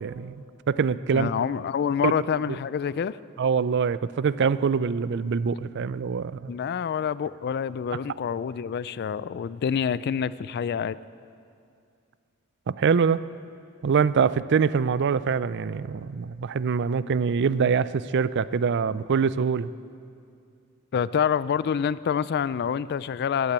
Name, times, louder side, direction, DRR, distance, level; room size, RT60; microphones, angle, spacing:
voice 1, 0.0-1.3 2.0-2.1 2.5-2.6 3.4-6.5 12.7-13.2 13.8-19.7, right 6 dB, 55° right, 16 dB, 0.4 m, -24 dB
voice 2, 1.1-3.2 6.5-11.0 20.9-23.5, left 7 dB, 50° left, 17 dB, 0.3 m, -27 dB
15.0 x 11.5 x 8.2 m, 2.4 s
head